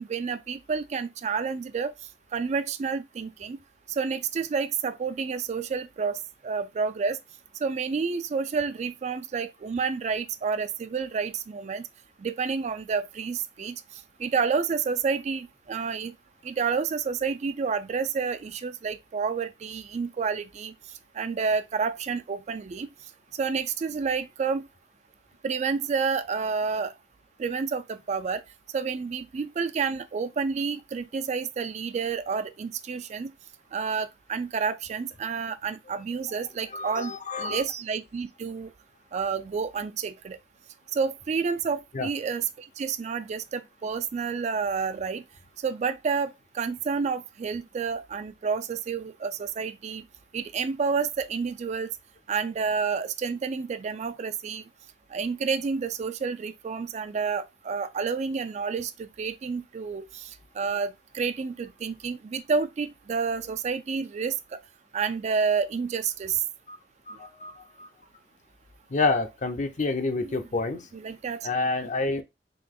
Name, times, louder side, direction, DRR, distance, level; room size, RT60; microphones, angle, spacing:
voice 1, 0.0-1.9 2.3-3.6 3.9-7.2 7.6-11.9 12.2-13.8 14.2-16.1 16.4-20.7 21.1-22.9 23.4-24.6 25.4-26.9 27.4-28.4 28.7-33.3 33.7-38.7 39.1-40.4 40.9-45.2 45.6-50.0 50.3-51.9 52.3-54.6 55.1-64.6 64.9-66.4 70.2-70.4 70.9-71.5, right 5 dB, 40° right, 0.3 m, -29 dB
voice 2, 36.7-37.6 41.9-42.1 66.7-66.8 67.1-67.9 68.9-70.9 71.4-72.2, left 3 dB, 45° left, 0.6 m, -28 dB
3.8 x 2.8 x 3.6 m
head